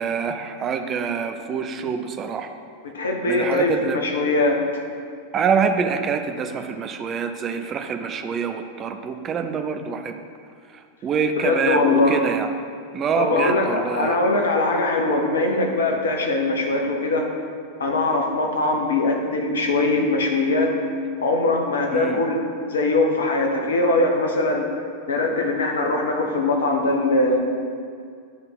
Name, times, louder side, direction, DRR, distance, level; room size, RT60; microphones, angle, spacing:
voice 1, 0.0-2.5 3.3-4.0 5.3-10.2 11.0-12.5 12.9-14.2 21.9-22.2, right 6 dB, 30° right, 7 dB, 0.5 m, -25 dB
voice 2, 2.8-4.6 11.4-12.2 13.2-17.3 17.8-20.7 21.2-22.4 22.7-24.7 25.1-27.4, left 2 dB, 65° left, 2 dB, 0.9 m, -21 dB
10.5 x 3.5 x 4.1 m, 2.2 s
figure-of-eight pair, 90°, 0 cm